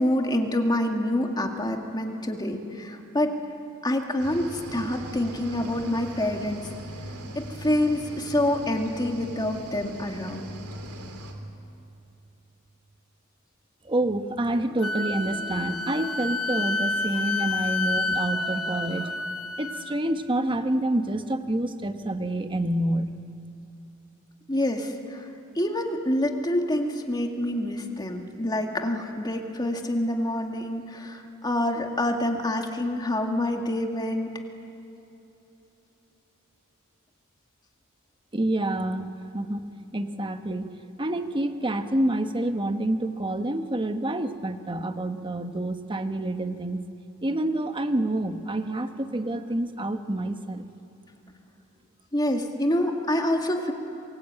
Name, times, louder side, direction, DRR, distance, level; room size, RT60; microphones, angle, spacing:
voice 1, 0.0-3.4 3.8-6.6 7.4-10.5 24.5-25.3 25.6-34.3 52.1-53.7, left 1 dB, 20° left, 3 dB, 2.2 m, -27 dB
Cricket / Waves surf, 4.2-11.3, right 1 dB, 85° right, 3.0 m, -40 dB
voice 2, 13.8-19.3 19.6-23.1 38.3-39.1 39.3-39.6 39.9-40.7 41.0-46.8 47.2-50.7, right 1 dB, 25° right, 8 dB, 1.2 m, -28 dB
Wind instrument woodwind instrument, 14.8-20.0, left 3 dB, 75° left, 1.1 m, -29 dB
26.5 x 22.5 x 9.1 m, 3.0 s
head